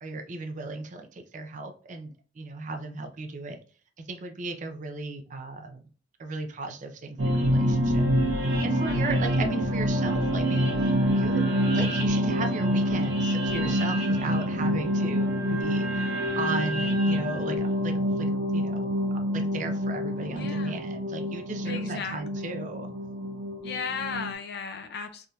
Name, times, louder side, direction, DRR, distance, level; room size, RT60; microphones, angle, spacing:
voice 1, 0.0-3.6 4.1-5.8 6.2-8.0 8.6-10.7 11.1-11.4 11.7-18.3 18.5-18.9 19.3-22.9, right 3 dB, 40° right, 0.5 m, -36 dB
sound 1, 7.2-24.3, equal, 70° right, 0.8 m, -26 dB
voice 2, 8.8-9.4 20.3-20.8 21.6-22.6 23.6-25.3, left 5 dB, 60° left, 0.5 m, -36 dB
3.4 x 2.7 x 2.3 m
head